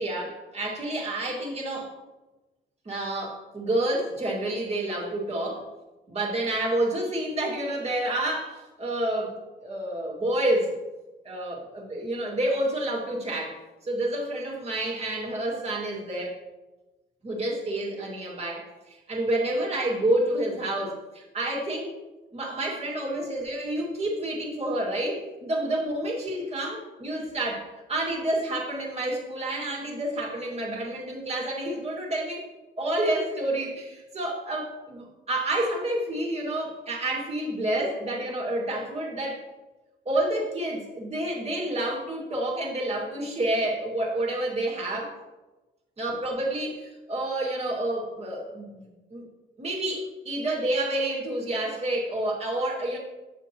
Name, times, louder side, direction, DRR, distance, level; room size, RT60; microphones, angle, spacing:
voice 1, 0.0-1.9 2.9-5.6 6.1-10.7 11.2-13.6 13.8-16.3 17.2-21.9 22.3-32.5 32.8-39.4 40.1-45.1 46.0-49.3 49.6-53.0, right 1 dB, 30° right, -3 dB, 2.1 m, -29 dB
7.5 x 6.9 x 3.0 m, 1.1 s
cardioid pair, 90°, 20 cm